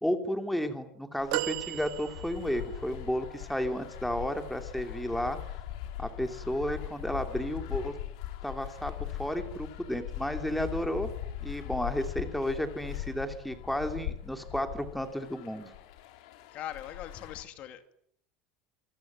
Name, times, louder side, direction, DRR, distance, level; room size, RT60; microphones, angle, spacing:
voice 1, 0.0-5.4 6.0-7.9 8.4-8.9 9.2-11.1 11.4-15.7, equal, ahead, 7 dB, 2.7 m, -32 dB
sound 1, 1.2-17.4, left 12 dB, 90° left, 4.6 m, -40 dB
sound 2, 1.3-2.7 3.5-3.6, right 18 dB, 65° right, 1.5 m, -34 dB
voice 2, 16.5-18.0, left 11 dB, 40° left, 9 dB, 2.4 m, -41 dB
27.0 x 22.0 x 9.4 m, 0.68 s
cardioid pair, 165°, 3 cm